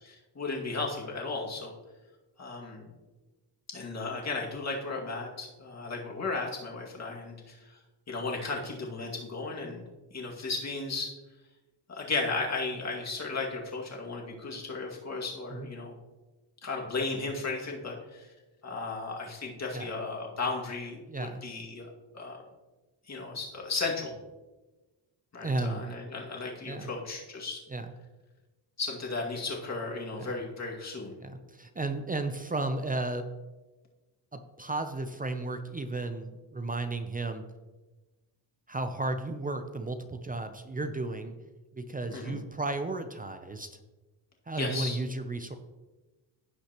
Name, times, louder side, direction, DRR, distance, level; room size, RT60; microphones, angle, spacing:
voice 1, 0.1-1.7 2.4-2.8 3.7-7.7 8.1-9.8 10.1-11.1 11.9-15.9 16.6-18.3 18.6-21.0 21.4-21.9 22.1-22.4 23.1-24.2 25.3-27.6 28.8-31.2 42.1-42.4 44.6-45.0, left 3 dB, 35° left, -1 dB, 2.2 m, -35 dB
voice 2, 21.1-21.4 25.4-25.8 26.7-26.9 27.7-27.9 30.2-30.4 31.2-33.3 34.3-37.4 38.7-41.4 41.7-43.8 44.5-45.5, right 2 dB, 20° right, 8 dB, 0.6 m, -34 dB
16.0 x 5.7 x 3.0 m, 1.2 s
cardioid pair, 105°, 45 cm